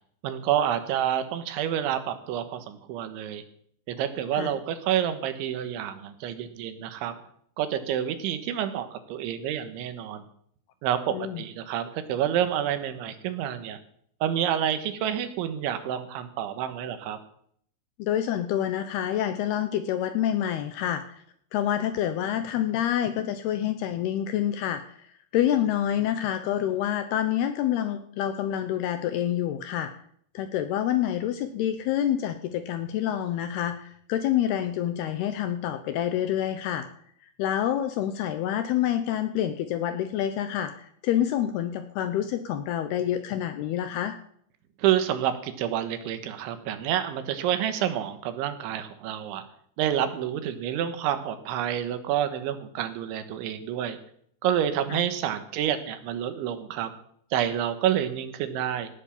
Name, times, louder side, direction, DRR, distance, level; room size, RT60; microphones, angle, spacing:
voice 1, 0.2-3.4 3.9-7.1 7.6-10.3 10.8-13.8 14.2-17.2 44.8-49.4 49.8-54.0 54.4-56.9 57.3-58.9, right 10 dB, 80° right, 9 dB, 3.6 m, -28 dB
voice 2, 11.1-11.4 18.0-21.2 21.5-24.8 25.3-29.9 30.3-36.9 37.4-44.2 54.9-55.0, left 11 dB, 80° left, 9 dB, 2.4 m, -27 dB
18.0 x 8.2 x 7.1 m, 0.65 s
omnidirectional pair, 5.4 m